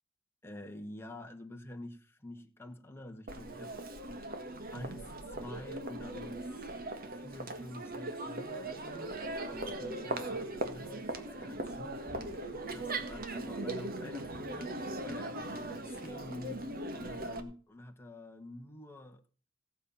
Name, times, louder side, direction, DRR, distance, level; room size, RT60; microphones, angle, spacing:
voice 1, 0.4-4.3 4.7-6.4 7.0-19.2, left 1 dB, 10° left, 1.5 m, -48 dB
Crowd, 3.3-17.4, right 2 dB, 50° right, 1.7 m, -39 dB
18.0 x 7.3 x 5.6 m
head